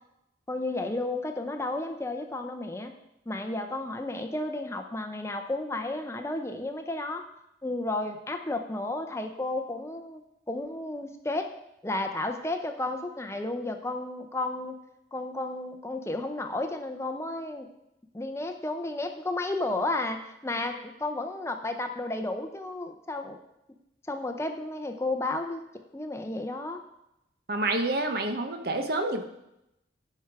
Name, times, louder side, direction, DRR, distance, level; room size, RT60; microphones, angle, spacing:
voice 1, 0.5-2.9 3.3-7.3 7.6-10.2 10.5-11.5 11.8-14.8 15.1-17.7 18.1-23.4 24.1-25.6 25.9-26.8, left 2 dB, 15° left, 6 dB, 0.6 m, -32 dB
voice 2, 27.5-29.2, right 2 dB, 55° right, 6 dB, 1.0 m, -28 dB
15.0 x 5.8 x 4.7 m, 0.87 s
head